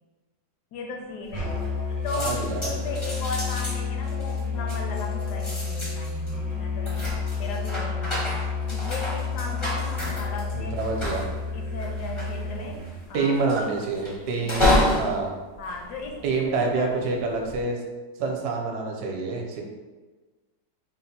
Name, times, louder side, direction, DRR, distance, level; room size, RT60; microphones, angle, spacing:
voice 1, 0.7-10.8 11.1-13.4 14.3-14.8 15.6-16.2 16.5-16.9, left 3 dB, 70° left, 2 dB, 1.1 m, -37 dB
sound 1, 1.3-1.8 2.1-16.6 17.2-17.6, left 1 dB, 30° left, 0.5 m, -30 dB
Musical instrument, 1.3-13.0, left 5 dB, 40° right, 0.8 m, -30 dB
voice 2, 2.2-2.8 10.5-11.2 13.1-15.4 16.2-17.8 18.2-19.6, right 3 dB, 70° right, 1 dB, 1.2 m, -27 dB
4.3 x 2.1 x 4.1 m, 1.3 s
omnidirectional pair, 2.0 m